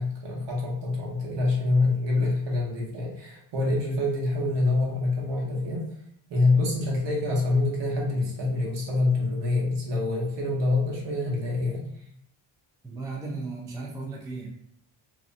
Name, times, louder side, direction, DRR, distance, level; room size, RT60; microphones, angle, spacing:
voice 1, 0.0-5.9 6.3-11.9 13.2-13.4, left 2 dB, 60° right, -3 dB, 1.1 m, -26 dB
voice 2, 12.8-14.5, right 3 dB, 10° right, -2 dB, 0.4 m, -36 dB
2.7 x 2.1 x 2.5 m, 0.71 s
cardioid pair, 80°, 50 cm